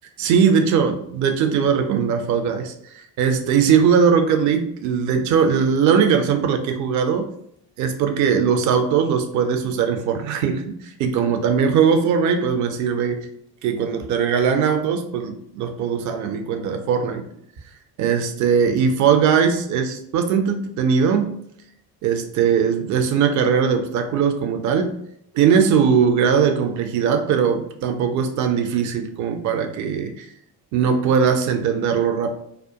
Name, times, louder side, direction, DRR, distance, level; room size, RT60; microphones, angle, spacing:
voice 1, 0.2-7.3 7.8-13.3 13.6-17.2 18.0-21.4 22.0-25.0 25.3-30.3 30.7-32.4, right 6 dB, 40° right, 6 dB, 0.5 m, -20 dB
2.3 x 2.1 x 2.7 m, 0.72 s
hypercardioid pair, 55°, 46 cm